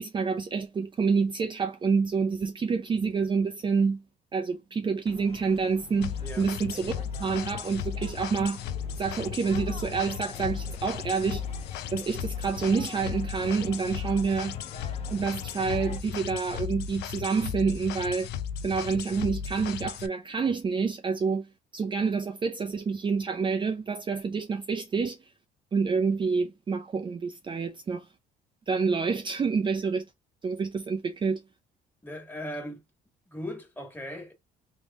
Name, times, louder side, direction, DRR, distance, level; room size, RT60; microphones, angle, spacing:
voice 1, 0.0-4.0 4.3-8.6 9.0-11.4 11.9-14.6 15.1-18.3 18.6-25.2 25.7-28.1 28.7-30.1 30.4-31.4, right 5 dB, 30° right, 0.6 m, -28 dB
sound 1, 5.0-16.0, left 5 dB, 35° left, 1.1 m, -46 dB
sound 2, 6.0-20.1, left 8 dB, 80° left, 0.5 m, -35 dB
voice 2, 32.0-32.8 33.3-34.3, left 1 dB, 10° left, 1.7 m, -38 dB
3.5 x 3.1 x 2.4 m
cardioid pair, 110°, 17 cm